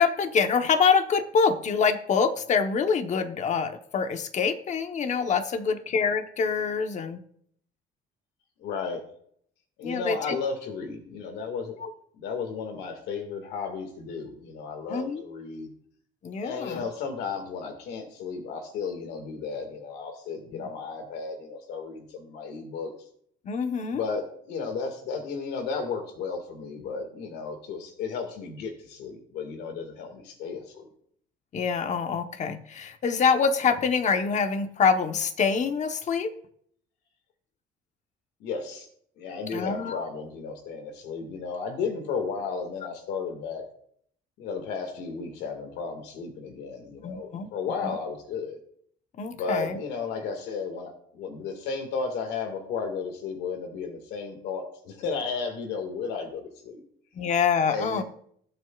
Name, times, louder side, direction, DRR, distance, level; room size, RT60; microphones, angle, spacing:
voice 1, 0.0-7.2 9.8-10.4 11.8-11.9 14.9-15.2 16.2-16.8 20.5-20.6 23.4-24.0 31.5-36.3 39.5-40.0 47.0-47.5 47.8-48.0 49.2-49.8 57.1-58.0, left 5 dB, 45° left, 7 dB, 1.1 m, -25 dB
voice 2, 8.6-9.0 9.8-11.8 12.1-15.7 16.4-22.9 23.9-30.9 38.4-38.9 39.2-43.6 44.4-48.6 49.4-56.8 57.7-58.0, left 5 dB, 85° left, 6 dB, 2.0 m, -34 dB
19.5 x 7.9 x 2.4 m, 0.65 s
cardioid pair, 110°, 17 cm